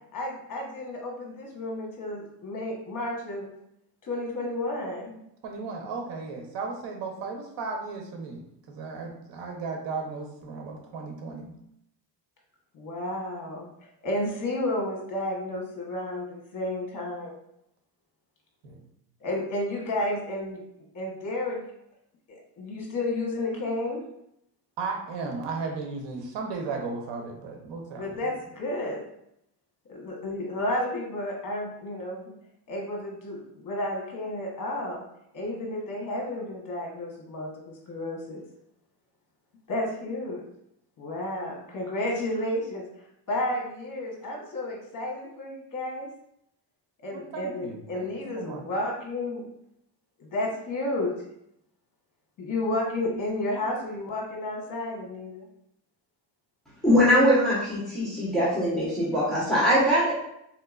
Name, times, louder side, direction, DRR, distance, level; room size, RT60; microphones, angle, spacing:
voice 1, 0.1-3.5 4.0-5.2 12.7-13.7 14.0-17.4 19.2-20.6 20.9-21.6 22.3-24.0 28.0-29.0 29.9-32.3 32.7-35.0 35.3-38.4 39.7-40.4 41.0-42.8 43.3-46.1 47.0-49.4 50.2-51.1 52.4-55.5, left 1 dB, 45° left, 0 dB, 1.1 m, -31 dB
voice 2, 5.4-11.5 18.6-18.8 24.8-28.3 47.1-48.1 48.3-48.6, right 4 dB, 75° right, 2 dB, 0.9 m, -35 dB
voice 3, 56.8-60.1, equal, ahead, -10 dB, 1.1 m, -22 dB
3.5 x 2.8 x 2.4 m, 0.77 s
cardioid pair, 115°, 42 cm